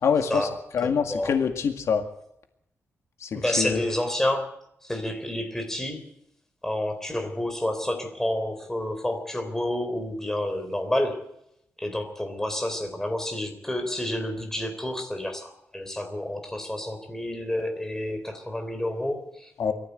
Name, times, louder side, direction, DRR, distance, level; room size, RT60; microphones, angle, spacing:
voice 1, 0.0-0.5 0.7-2.0 3.2-3.8 19.6-19.7, left 6 dB, 80° left, 5 dB, 2.0 m, -25 dB
voice 2, 0.8-1.3 3.3-4.5 4.8-6.0 6.6-11.2 11.8-19.5, left 1 dB, 10° left, 5 dB, 3.6 m, -29 dB
22.0 x 14.5 x 8.1 m, 0.78 s
wide cardioid pair, 140°, 5 cm